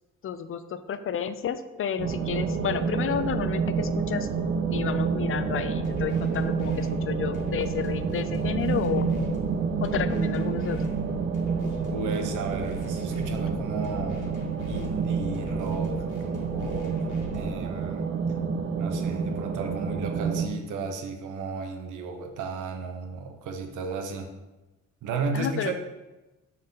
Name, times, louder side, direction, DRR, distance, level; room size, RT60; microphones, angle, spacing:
voice 1, 0.2-4.3 4.7-9.1 9.8-10.9 25.3-25.7, left 8 dB, 45° left, 12 dB, 0.5 m, -31 dB
sound 1, 2.0-20.5, right 5 dB, 40° right, 0.6 m, -29 dB
War behind the Hills, 5.8-17.8, left 3 dB, 80° left, 1.4 m, -40 dB
voice 2, 11.9-14.4 14.7-18.1 18.7-24.3 25.0-25.7, right 4 dB, 80° right, 4 dB, 1.0 m, -34 dB
7.2 x 4.1 x 3.9 m, 1.1 s
cardioid pair, 90°, 30 cm